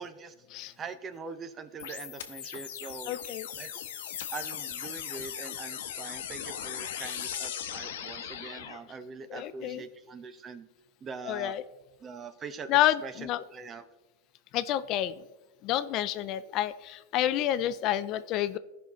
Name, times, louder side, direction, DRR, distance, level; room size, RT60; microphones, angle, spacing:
voice 1, 0.0-0.3 0.8-3.2 3.6-3.9 4.3-10.7 11.0-11.6 12.0-13.9, right 5 dB, 25° right, 12 dB, 0.6 m, -43 dB
sound 1, 1.8-8.8, left 9 dB, 75° left, 0.9 m, -38 dB
voice 2, 3.1-3.5 9.3-9.8 11.3-11.6 12.7-13.4 14.5-15.1 15.6-18.6, left 12 dB, 45° left, 14 dB, 0.3 m, -29 dB
14.5 x 5.6 x 3.0 m, 1.1 s
hypercardioid pair, 125°, 0 cm